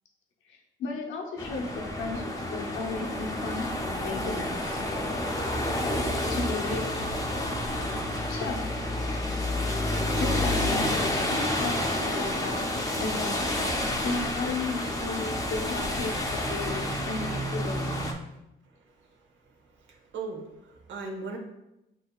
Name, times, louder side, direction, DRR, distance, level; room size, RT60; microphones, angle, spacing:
voice 1, 0.5-4.8 6.3-6.9 8.3-8.7 10.2-12.7 13.0-13.5 14.0-17.9, left 3 dB, 75° left, 0 dB, 0.8 m, -34 dB
sound 1, 1.4-18.1, left 1 dB, 15° left, 0.6 m, -29 dB
voice 2, 19.8-21.4, right 3 dB, 70° right, 2 dB, 0.9 m, -38 dB
6.2 x 2.8 x 2.3 m, 0.90 s
cardioid pair, 90°, 20 cm